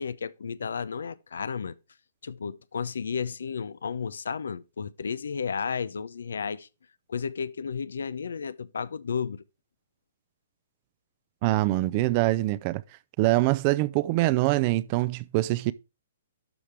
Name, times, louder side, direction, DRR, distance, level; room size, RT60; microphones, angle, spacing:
voice 1, 0.0-1.7 2.2-6.7 7.1-9.4, left 6 dB, 85° left, 0.6 m, -33 dB
voice 2, 11.4-12.8 13.2-15.7, right 18 dB, 35° right, 0.5 m, -24 dB
12.0 x 5.0 x 3.4 m
hypercardioid pair, 140°, 0 cm